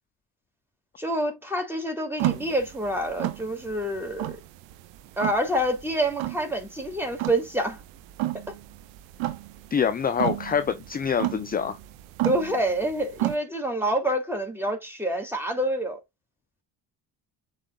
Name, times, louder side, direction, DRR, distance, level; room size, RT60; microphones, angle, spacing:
voice 1, 1.0-4.4 5.2-7.8 12.2-16.0, right 1 dB, 5° right, 2.8 m, -27 dB
sound 1, 2.2-13.4, right 16 dB, 65° right, 0.9 m, -32 dB
voice 2, 9.7-11.8, left 7 dB, 20° left, 0.5 m, -25 dB
11.0 x 3.8 x 2.4 m
hypercardioid pair, 50°, 49 cm